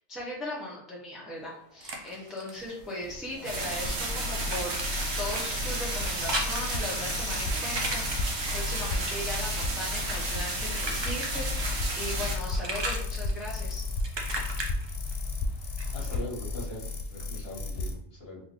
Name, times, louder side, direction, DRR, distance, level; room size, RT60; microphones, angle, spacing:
voice 1, 0.1-13.8, left 1 dB, ahead, -4 dB, 0.6 m, -38 dB
sound 1, 1.4-3.5 3.8-11.9 12.2-16.2, right 2 dB, 40° right, 0.3 m, -38 dB
sound 2, 2.6-17.9, left 3 dB, 90° left, 0.9 m, -34 dB
sound 3, 3.4-12.4, right 2 dB, 65° right, 0.8 m, -33 dB
voice 2, 15.9-16.8 17.1-18.4, left 1 dB, 60° left, -4 dB, 1.2 m, -40 dB
3.6 x 2.6 x 2.9 m, 0.70 s
omnidirectional pair, 1.2 m